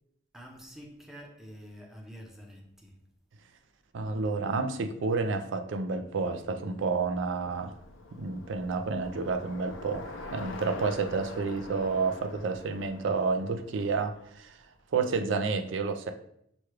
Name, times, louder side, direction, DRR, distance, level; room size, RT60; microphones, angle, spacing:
voice 1, 0.3-3.0, equal, ahead, 0.7 m, -47 dB
voice 2, 3.9-7.8 8.2-14.6 14.9-16.1, right 4 dB, 70° right, 0.4 m, -30 dB
Bicycle, 6.3-14.6, left 3 dB, 85° left, 0.6 m, -45 dB
6.0 x 2.3 x 3.2 m
head